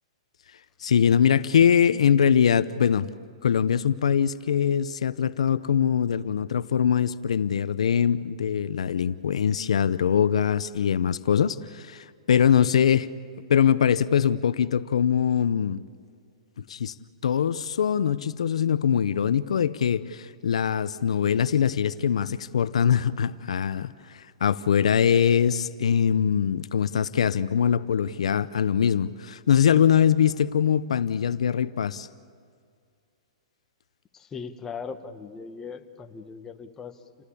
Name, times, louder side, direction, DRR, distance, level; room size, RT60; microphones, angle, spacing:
voice 1, 0.8-3.1 3.4-13.1 13.5-15.8 16.7-16.9 17.2-32.1, left 8 dB, 85° left, 16 dB, 0.7 m, -22 dB
voice 2, 34.1-37.2, left 5 dB, 15° left, 7 dB, 1.3 m, -39 dB
29.5 x 19.0 x 8.5 m, 2.2 s
hypercardioid pair, 150°, 3 cm